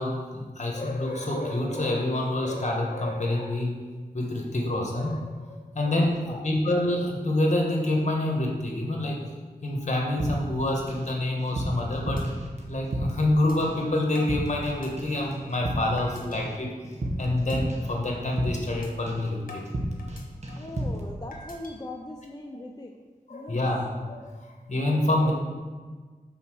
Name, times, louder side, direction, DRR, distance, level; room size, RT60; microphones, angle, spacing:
voice 1, 0.0-3.7 4.1-5.3 5.7-9.2 9.6-12.2 12.7-16.7 17.2-19.6 23.3-24.3 24.7-25.3, left 1 dB, 50° left, 0 dB, 1.4 m, -27 dB
voice 2, 6.0-6.5 20.5-22.9 23.3-23.6, left 1 dB, 25° left, 0 dB, 0.5 m, -40 dB
sound 1, 10.2-11.1 11.4-13.3 13.6-13.9 14.2-14.7 15.0-18.8 19.1-19.4 19.7-20.2 20.4-21.1, right 1 dB, 50° right, 1.2 m, -32 dB
sound 2, 12.2-12.3 12.7-12.8 13.5-13.6 14.1-15.4 16.0-16.4 16.8-17.1 17.5-17.6 18.0-18.2 18.8-18.9 19.5-20.7 21.3-21.7, left 2 dB, 70° left, 1.2 m, -46 dB
5.7 x 4.3 x 6.1 m, 1.4 s
wide cardioid pair, 80°, 15 cm